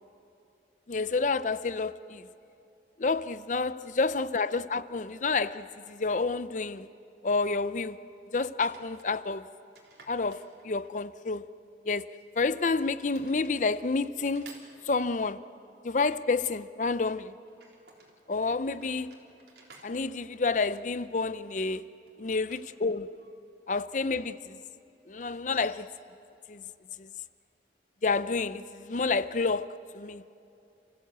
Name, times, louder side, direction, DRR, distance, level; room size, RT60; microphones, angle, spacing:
voice 1, 0.9-2.3 3.0-6.9 7.2-8.0 8.3-9.5 10.1-10.4 10.6-11.4 11.9-12.1 12.4-14.5 14.9-15.4 15.8-17.3 18.3-19.1 19.8-21.9 22.2-23.1 23.7-24.6 25.1-25.9 26.5-26.6 27.0-27.1 28.0-30.2, left 4 dB, 45° left, 0.5 m, -29 dB
sound 1, 8.5-9.1 9.8-11.1 12.0-12.7 13.1-13.6 14.2-15.3 17.5-18.2 18.6-21.0 22.1-23.3 23.6-23.7 25.3-25.8, right 3 dB, 70° right, 3.6 m, -56 dB
30.0 x 15.5 x 8.1 m
head